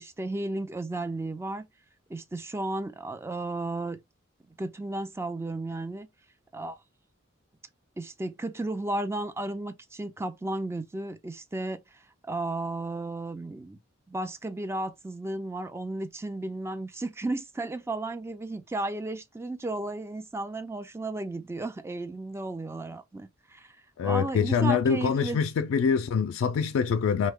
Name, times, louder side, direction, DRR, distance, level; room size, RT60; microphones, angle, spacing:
voice 1, 0.0-1.7 2.1-4.0 4.6-6.1 6.5-6.8 8.0-13.8 14.1-23.7 24.0-25.4, right 2 dB, 15° right, 0.4 m, -34 dB
voice 2, 24.0-27.3, left 6 dB, 80° left, 0.3 m, -25 dB
3.1 x 2.1 x 3.5 m
head